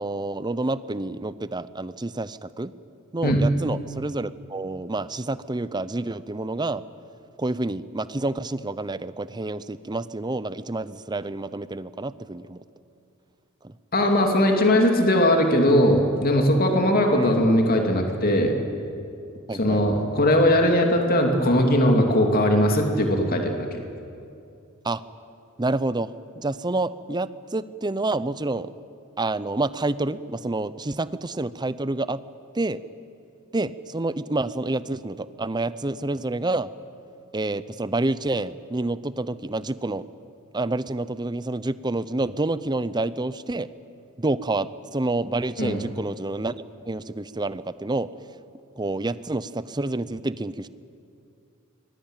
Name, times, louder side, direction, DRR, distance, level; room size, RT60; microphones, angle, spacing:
voice 1, 0.0-2.7 3.1-6.8 7.4-12.6 13.6-13.7 17.1-17.3 19.5-19.8 24.8-25.0 25.6-28.7 29.2-32.2 32.5-32.8 33.5-36.7 37.3-40.0 40.5-43.7 44.2-46.5 46.9-48.1 48.8-50.7, right 2 dB, 20° right, 15 dB, 0.6 m, -28 dB
voice 2, 13.9-18.6 19.6-23.8 45.6-45.8, left 1 dB, 45° left, 3 dB, 2.6 m, -20 dB
25.0 x 20.5 x 9.0 m, 2.7 s
head